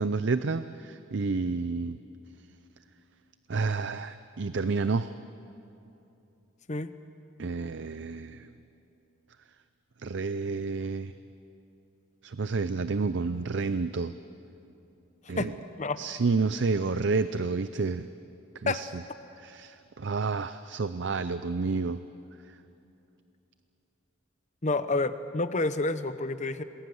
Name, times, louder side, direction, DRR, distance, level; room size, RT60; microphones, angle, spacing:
voice 1, 0.0-2.0 3.5-5.1 7.4-8.5 10.0-11.1 12.2-14.1 15.3-15.5 16.0-18.1 18.6-19.0 19.4-22.0, right 4 dB, 60° right, 12 dB, 0.5 m, -30 dB
voice 2, 24.6-26.6, left 3 dB, 35° left, 11 dB, 0.9 m, -29 dB
27.5 x 20.5 x 7.9 m, 2.9 s
head